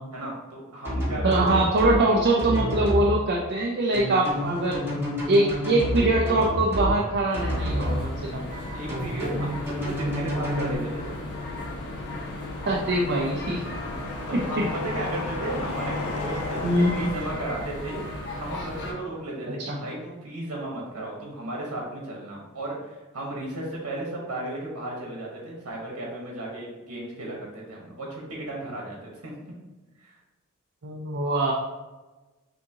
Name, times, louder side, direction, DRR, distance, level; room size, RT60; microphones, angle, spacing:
voice 1, 0.1-1.6 8.7-11.2 14.3-18.0 18.3-29.3 30.0-30.2, right 1 dB, 90° right, -2 dB, 1.1 m, -35 dB
sound 1, 0.8-2.0 2.4-3.0 3.9-6.9 7.3-8.0 8.9-10.7, equal, 10° right, 1.4 m, -28 dB
voice 2, 1.2-4.8 5.3-8.4 12.7-13.6 14.3-14.6 16.6-17.1 19.5-19.8 30.8-31.5, right 2 dB, 50° right, -1 dB, 0.5 m, -23 dB
sound 2, 4.2-17.4, left 3 dB, 75° left, 0.5 m, -38 dB
sound 3, 7.3-18.9, left 1 dB, 50° left, 1.0 m, -36 dB
6.2 x 2.7 x 2.8 m, 1.2 s
head